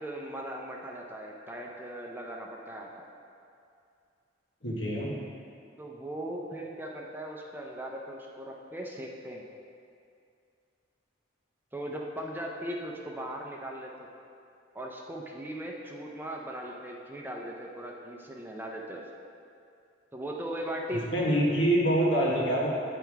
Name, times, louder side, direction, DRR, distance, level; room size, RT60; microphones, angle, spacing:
voice 1, 0.0-2.9 5.8-9.4 11.7-14.1 14.7-19.0 20.1-21.1, right 1 dB, 10° right, -1 dB, 0.5 m, -38 dB
voice 2, 4.6-5.1 20.9-22.7, right 1 dB, 70° left, -4 dB, 1.3 m, -25 dB
8.9 x 3.4 x 4.6 m, 2.5 s
head